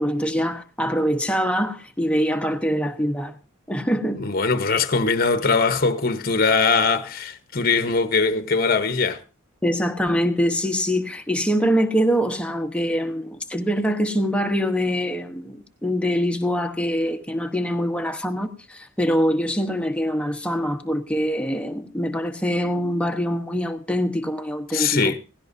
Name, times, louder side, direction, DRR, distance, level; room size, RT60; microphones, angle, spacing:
voice 1, 0.0-3.4 3.7-4.3 9.6-25.1, equal, 5° left, 1.0 m, -24 dB
voice 2, 4.2-9.2 24.7-25.2, left 4 dB, 45° left, 0.9 m, -21 dB
17.5 x 16.0 x 2.6 m
head